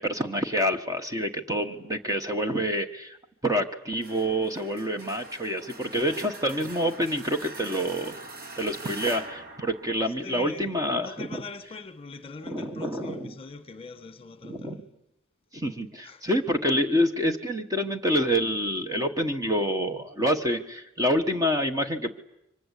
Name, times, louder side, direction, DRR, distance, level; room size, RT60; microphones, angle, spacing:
voice 1, 0.0-3.2 3.4-8.2 8.6-11.1 12.5-13.3 14.4-14.8 15.5-22.1, equal, 15° right, 1.3 m, -27 dB
sound 1, 4.0-10.7, right 2 dB, 45° right, 2.1 m, -43 dB
voice 2, 10.2-14.8 16.0-16.3, left 3 dB, 25° left, 1.6 m, -43 dB
27.5 x 24.5 x 8.3 m
head